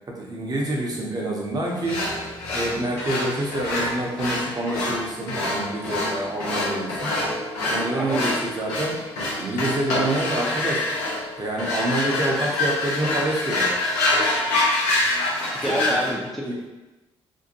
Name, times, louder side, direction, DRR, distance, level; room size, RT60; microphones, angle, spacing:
voice 1, 0.1-2.0 2.5-7.1 7.6-9.0 9.4-10.8 11.4-13.7 15.7-16.0 16.4-16.5, right 1 dB, 35° right, -2 dB, 0.8 m, -27 dB
sound 1, 1.8-16.1, left 2 dB, 80° left, 0.7 m, -26 dB
voice 2, 15.5-16.7, equal, ahead, -4 dB, 0.6 m, -28 dB
2.6 x 2.1 x 2.8 m, 1.1 s
hypercardioid pair, 50°, 12 cm